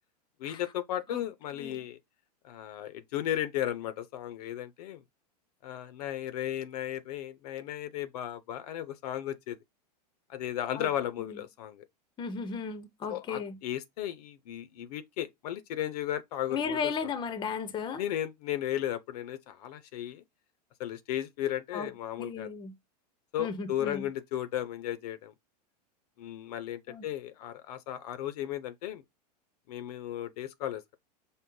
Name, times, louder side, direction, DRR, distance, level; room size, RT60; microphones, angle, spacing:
voice 1, 0.4-2.0 2.4-5.0 5.6-9.6 10.3-11.9 13.1-16.9 18.0-20.2 20.8-22.5 23.3-25.3 26.2-29.0 29.7-31.0, left 12 dB, 65° left, 0.6 m, -35 dB
voice 2, 12.2-13.6 16.5-18.0 21.7-21.9 22.2-22.7 23.4-24.1 26.9-27.0, left 5 dB, 20° left, 0.6 m, -35 dB
5.4 x 2.0 x 3.8 m
hypercardioid pair, 110°, 21 cm